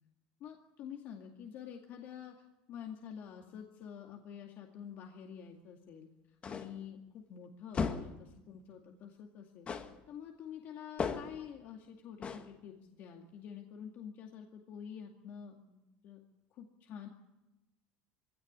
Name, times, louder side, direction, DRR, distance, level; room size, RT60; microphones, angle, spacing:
voice 1, 0.4-2.3 2.7-9.7 10.1-16.2 16.5-17.1, left 8 dB, 55° left, 2 dB, 2.2 m, -48 dB
sound 1, 6.4-6.8 7.7-8.2 9.7-10.0 11.0-11.4 12.2-12.5, left 5 dB, 30° left, 1.8 m, -36 dB
22.0 x 17.5 x 9.8 m, 1.0 s
supercardioid pair, 125°, 4 cm